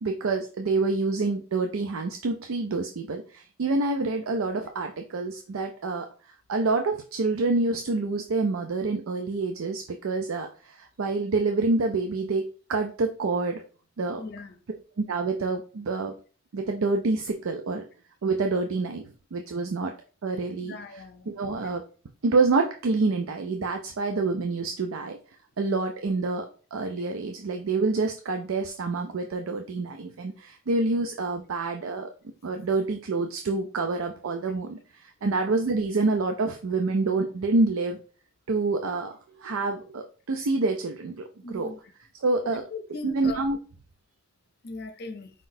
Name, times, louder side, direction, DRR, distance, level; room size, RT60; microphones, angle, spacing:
voice 1, 0.0-6.1 6.5-13.6 14.0-14.2 15.0-16.1 16.5-17.8 18.2-19.0 19.3-19.9 20.2-21.8 22.2-25.2 25.6-32.1 32.4-38.0 38.5-41.7 42.2-42.6 43.0-43.6, right 3 dB, 90° right, 0.5 m, -27 dB
voice 2, 14.2-14.6 20.6-21.3 41.4-41.8 42.7-43.4 44.6-45.3, left 3 dB, 50° left, 0.6 m, -39 dB
5.0 x 3.9 x 2.7 m
head